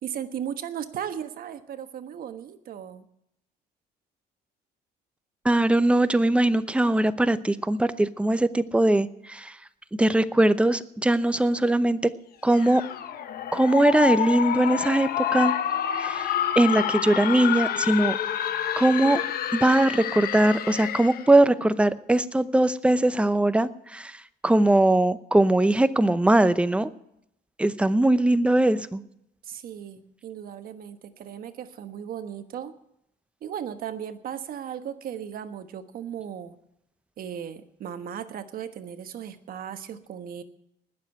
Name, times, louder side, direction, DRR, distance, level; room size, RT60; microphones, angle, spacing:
voice 1, 0.0-3.0 29.4-32.7 33.4-36.6 37.2-40.4, right 9 dB, 60° right, 9 dB, 1.3 m, -36 dB
voice 2, 5.4-9.5 10.0-12.0 12.4-12.8 13.5-15.5 16.0-18.2 18.8-19.2 19.5-24.2 24.4-26.9 27.6-29.0, right 1 dB, 5° right, 13 dB, 0.7 m, -21 dB
sound 1, 12.5-21.3, left 10 dB, 65° left, 1.1 m, -28 dB
20.0 x 7.3 x 7.9 m, 0.78 s
cardioid pair, 110°, 17 cm